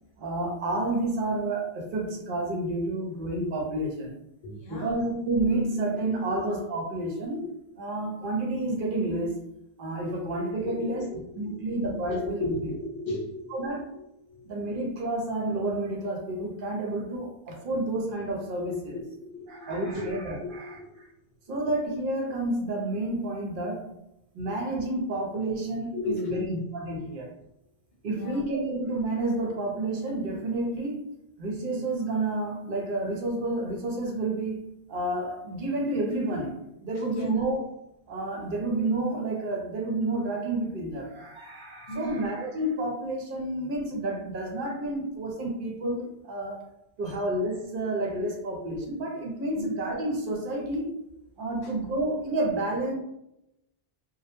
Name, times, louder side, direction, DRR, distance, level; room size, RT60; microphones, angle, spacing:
voice 1, 0.2-4.1 4.7-7.5 7.8-9.4 9.8-11.0 11.4-12.7 13.5-13.9 14.4-19.0 19.5-21.1 21.5-24.0 24.3-27.3 28.0-31.1 31.4-37.6 38.1-46.6 47.0-51.0 51.4-52.9, right 2 dB, 60° right, 0 dB, 0.8 m, -30 dB
voice 2, 4.4-4.9 6.3-6.4 10.6-11.7 12.0-12.2 12.5-14.5 18.9-20.1 20.4-21.0 25.9-26.6 28.0-28.4 37.1-37.4 41.9-42.2 47.1-47.2 49.6-49.7 51.5-51.8, left 1 dB, 75° left, -2 dB, 0.8 m, -36 dB
2.1 x 2.1 x 2.9 m, 0.83 s
omnidirectional pair, 1.0 m